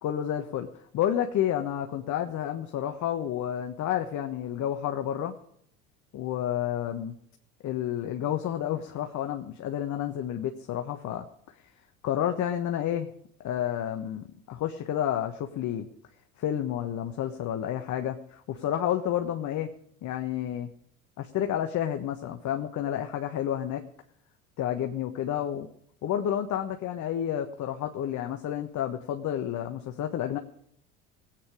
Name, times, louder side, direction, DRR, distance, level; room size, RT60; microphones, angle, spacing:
voice 1, 0.0-0.7 0.9-5.3 6.1-7.1 7.6-11.3 12.0-13.1 13.4-15.9 16.4-19.7 20.0-20.7 21.2-23.8 24.6-25.7 26.0-30.4, left 10 dB, 40° left, 6 dB, 1.3 m, -30 dB
20.0 x 8.8 x 5.0 m, 0.67 s
hypercardioid pair, 70°, 42 cm